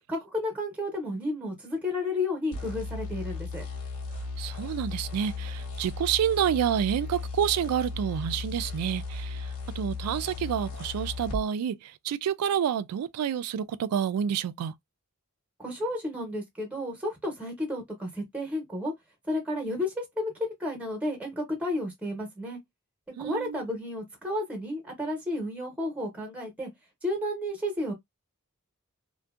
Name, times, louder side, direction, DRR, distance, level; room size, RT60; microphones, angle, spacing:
voice 1, 0.1-3.6 15.6-18.9 19.3-22.6 23.2-26.7 27.0-27.9, left 1 dB, 5° right, 0.7 m, -32 dB
sound 1, 2.5-11.4, left 3 dB, 85° left, 0.9 m, -36 dB
voice 2, 4.4-14.7 23.2-23.6, right 8 dB, 85° right, 0.3 m, -29 dB
2.6 x 2.1 x 2.3 m
head